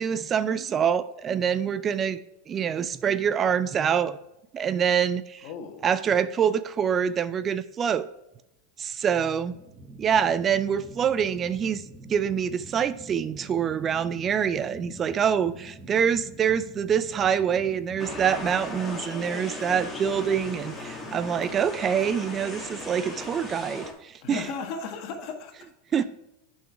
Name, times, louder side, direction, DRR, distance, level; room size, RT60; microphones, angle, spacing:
voice 1, 0.0-2.2 2.5-4.2 4.5-5.5 5.8-8.1 8.8-9.6 10.0-11.8 12.1-24.4 25.9-26.0, right 8 dB, 30° right, 15 dB, 0.4 m, -25 dB
voice 2, 5.4-5.9 20.7-20.8 24.2-26.0, left 5 dB, 55° left, 4 dB, 1.7 m, -37 dB
sound 1, 9.1-20.0, right 1 dB, 10° right, 1.1 m, -46 dB
sound 2, 18.0-23.9, left 2 dB, 15° left, 2.1 m, -37 dB
7.7 x 5.6 x 4.4 m, 0.89 s
supercardioid pair, 115°, 0 cm